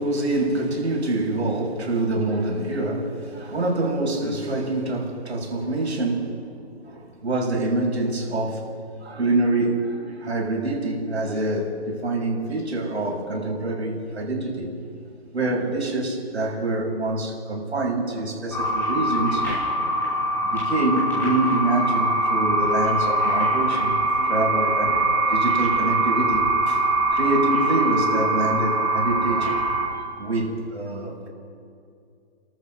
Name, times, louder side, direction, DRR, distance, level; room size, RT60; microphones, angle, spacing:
voice 1, 0.0-6.4 6.8-8.7 9.0-14.7 15.3-19.5 20.4-26.8 27.1-29.6 29.9-31.3, right 2 dB, 80° right, -1 dB, 6.7 m, -26 dB
sound 1, 18.5-29.9, right 1 dB, 5° left, 5.4 m, -23 dB
29.5 x 13.5 x 6.5 m, 2.3 s
hypercardioid pair, 160°, 33 cm